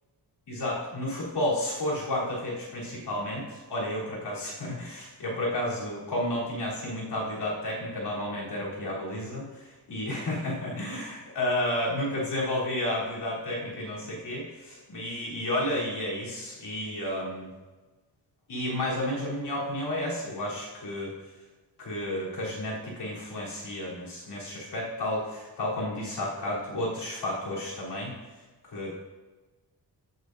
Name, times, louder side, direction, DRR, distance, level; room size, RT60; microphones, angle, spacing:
voice 1, 0.5-17.5 18.5-21.1 21.8-28.1 28.7-28.9, left 1 dB, 70° left, -6 dB, 3.5 m, -31 dB
15.0 x 8.0 x 2.6 m, 1.2 s
wide cardioid pair, 170°, 42 cm